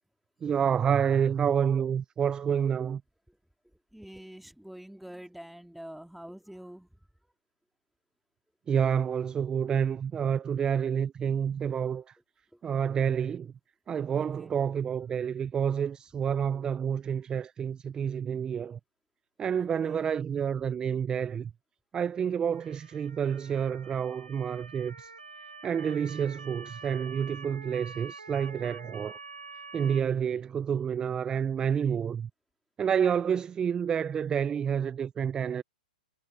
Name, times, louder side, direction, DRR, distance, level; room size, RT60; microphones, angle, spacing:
voice 1, 0.4-3.0 8.7-12.0 12.6-13.5 13.9-18.8 19.4-21.5 21.9-25.1 25.6-29.2 29.7-32.3 32.8-35.6, right 8 dB, 15° right, 0.5 m, -29 dB
voice 2, 3.9-6.9 12.5-12.6 14.1-14.6 19.5-20.1 24.8-24.9, equal, ahead, 2.3 m, -46 dB
Motor vehicle (road) / Siren, 22.5-30.0, right 4 dB, 90° right, 5.1 m, -46 dB
hypercardioid pair, 115°, 5 cm